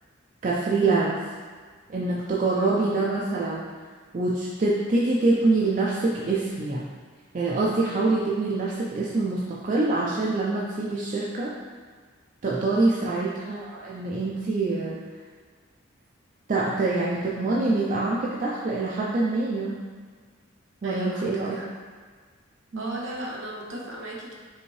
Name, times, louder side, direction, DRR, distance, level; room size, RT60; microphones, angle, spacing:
voice 1, 0.4-1.2 1.9-3.6 4.1-6.9 7.3-11.6 12.4-15.0 16.5-19.8 20.8-21.6 22.7-23.0, right 3 dB, 40° right, -5 dB, 0.4 m, -25 dB
voice 2, 2.5-2.8 12.9-13.2 20.8-21.7 22.7-24.3, right 1 dB, 65° right, -3 dB, 0.8 m, -37 dB
5.5 x 2.6 x 3.1 m, 1.5 s
head